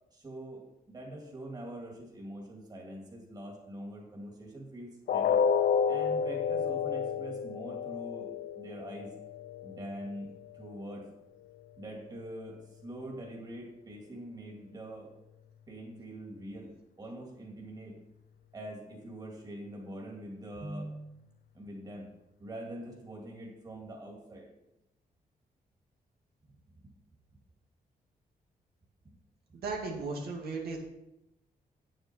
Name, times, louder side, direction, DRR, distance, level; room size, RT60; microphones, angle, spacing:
voice 1, 0.1-5.4 5.9-9.1 9.6-11.0 11.8-15.1 15.7-18.0 18.5-21.2 21.5-22.1 22.4-24.5, right 1 dB, 25° right, -1 dB, 2.5 m, -44 dB
sound 1, 5.1-11.1 11.4-11.6 12.1-12.2, left 7 dB, 70° left, 0.5 m, -31 dB
voice 2, 29.6-30.8, right 3 dB, 90° right, -1 dB, 2.4 m, -35 dB
9.1 x 8.9 x 4.6 m, 0.87 s
wide cardioid pair, 150°, 15 cm